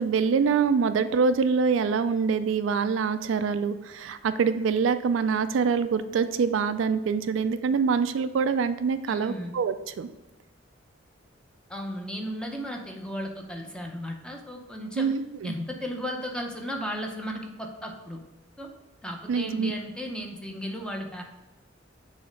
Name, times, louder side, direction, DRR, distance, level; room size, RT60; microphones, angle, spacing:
voice 1, 0.0-10.1 15.0-15.6 19.3-19.7, right 5 dB, 75° right, 11 dB, 0.4 m, -25 dB
voice 2, 9.1-9.5 11.7-15.1 15.4-18.2 18.6-18.7 19.0-21.2, equal, 5° left, 2 dB, 0.7 m, -35 dB
6.9 x 3.2 x 5.2 m, 1.0 s
head